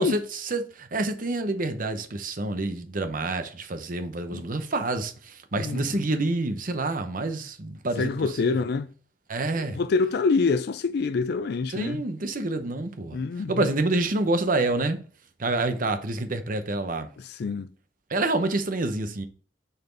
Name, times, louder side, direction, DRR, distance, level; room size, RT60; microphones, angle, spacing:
voice 1, 0.0-8.1 8.4-8.5 9.3-9.8 11.7-13.2 13.5-15.0 15.4-17.1 18.1-19.3, right 2 dB, 50° right, 0.8 m, -27 dB
voice 2, 5.6-6.0 8.0-8.9 9.6-12.0 13.1-13.7 17.2-17.7, left 4 dB, 60° left, 0.4 m, -26 dB
6.7 x 4.3 x 3.9 m
head